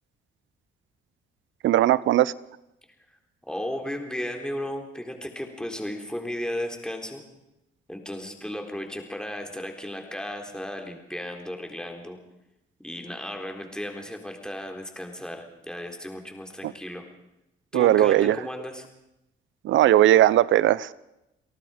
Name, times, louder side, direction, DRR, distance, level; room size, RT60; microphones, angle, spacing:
voice 1, 1.6-2.3 16.6-16.7 17.7-18.4 19.6-20.9, right 13 dB, 75° right, 19 dB, 0.7 m, -18 dB
voice 2, 3.5-7.2 7.9-12.2 12.8-17.0 17.7-18.8, left 1 dB, 5° left, 3 dB, 3.9 m, -35 dB
29.0 x 18.0 x 5.1 m, 0.90 s
cardioid pair, 90°, 20 cm